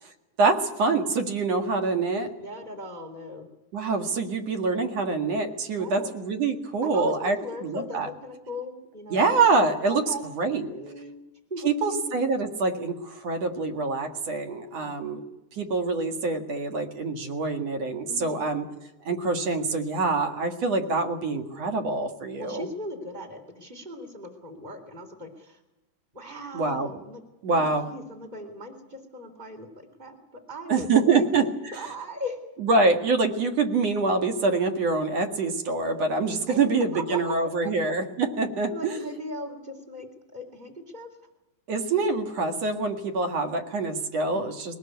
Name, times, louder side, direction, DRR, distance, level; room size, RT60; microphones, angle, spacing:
voice 1, 0.4-2.3 3.7-8.1 9.1-10.0 10.4-10.7 11.6-15.3 15.5-18.6 19.1-22.7 26.5-26.9 27.4-27.9 30.7-31.7 32.6-39.0 41.7-44.7, right 3 dB, 50° right, 5 dB, 2.5 m, -25 dB
voice 2, 2.4-3.5 5.7-6.1 6.8-9.5 9.9-10.2 10.5-11.2 11.5-12.1 14.6-15.0 18.1-18.4 22.4-25.6 26.1-27.2 27.5-31.3 31.7-32.4 36.5-37.5 38.7-41.1 44.2-44.5, equal, 10° right, 6 dB, 3.0 m, -38 dB
21.5 x 19.5 x 8.3 m, 1.0 s
omnidirectional pair, 4.6 m